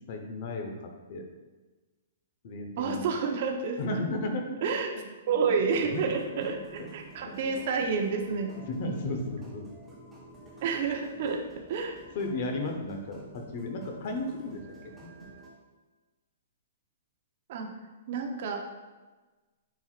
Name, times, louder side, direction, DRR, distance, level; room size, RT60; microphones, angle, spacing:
voice 1, 0.1-1.3 2.4-3.3 3.8-4.6 5.4-6.0 7.4-7.6 8.7-9.7 12.1-15.2, left 2 dB, 45° left, 3 dB, 1.1 m, -34 dB
voice 2, 2.8-3.8 4.6-4.9 5.3-8.5 10.6-11.4 11.7-12.0 17.5-17.8 18.1-18.6, right 5 dB, 45° right, 3 dB, 0.9 m, -29 dB
sound 1, 5.8-15.5, right 2 dB, 5° right, 1.2 m, -51 dB
9.3 x 4.7 x 2.5 m, 1.2 s
hypercardioid pair, 165°, 0 cm